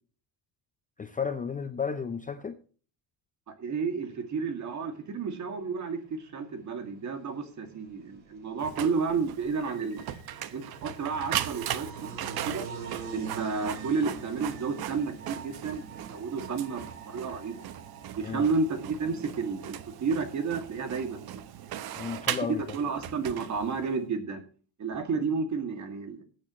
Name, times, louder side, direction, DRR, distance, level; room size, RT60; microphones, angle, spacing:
voice 1, 1.0-2.6 18.2-18.5 22.0-22.6, left 6 dB, 20° left, 0.5 m, -33 dB
voice 2, 3.5-11.9 12.2-12.7 13.1-17.7 18.2-21.4 22.4-24.4 24.8-26.2, right 5 dB, 40° right, 2.2 m, -31 dB
sound 1, 4.0-19.9, right 6 dB, 25° right, 4.2 m, -53 dB
sound 2, 5.8-23.9, right 4 dB, 80° right, 4.2 m, -49 dB
Printer, 8.6-24.0, right 11 dB, 55° right, 1.0 m, -38 dB
21.0 x 8.6 x 3.0 m
cardioid pair, 145°, 44 cm